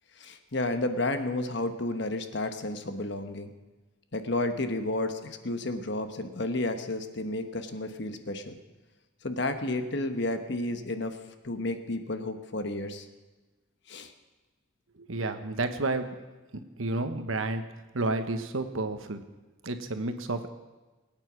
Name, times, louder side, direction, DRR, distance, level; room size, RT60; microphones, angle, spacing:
voice 1, 0.2-3.5 4.1-8.6 9.2-11.2 11.4-13.1 13.9-14.1, left 2 dB, 55° left, 8 dB, 1.2 m, -31 dB
voice 2, 15.0-16.1 16.8-17.6 17.9-19.2 19.6-20.5, right 2 dB, 80° right, 8 dB, 1.2 m, -30 dB
21.0 x 9.1 x 6.2 m, 1.2 s
head